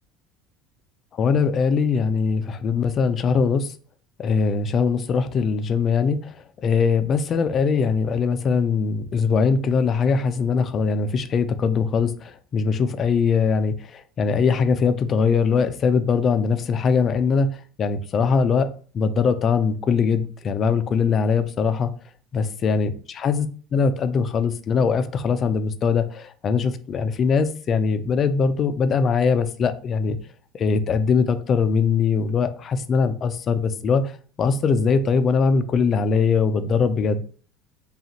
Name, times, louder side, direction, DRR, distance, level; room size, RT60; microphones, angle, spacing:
voice 1, 1.2-3.7 4.2-17.5 17.8-21.9 22.3-22.9 23.2-23.5 23.7-30.2 30.5-34.1 34.4-37.2, left 5 dB, 45° left, 0.4 m, -21 dB
5.0 x 2.4 x 2.7 m
hypercardioid pair, 85°, 0 cm